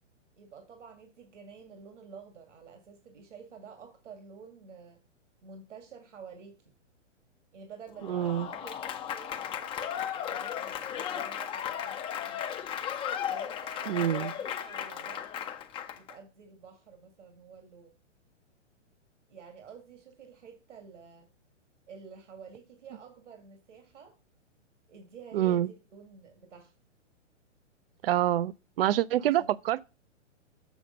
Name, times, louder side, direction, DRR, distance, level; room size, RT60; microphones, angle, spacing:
voice 1, 0.4-5.0 5.4-6.7 7.5-12.6 13.3-15.5 15.9-18.0 19.3-21.3 21.9-24.1 24.9-26.7 29.2-29.5, right 5 dB, 75° right, 2.1 m, -50 dB
Applause / Crowd, 8.0-16.1, left 9 dB, 15° left, 0.5 m, -35 dB
voice 2, 8.1-8.5 13.9-14.3 25.3-25.7 28.0-29.8, right 12 dB, 50° right, 0.5 m, -26 dB
7.0 x 6.5 x 5.1 m
hypercardioid pair, 120°, 37 cm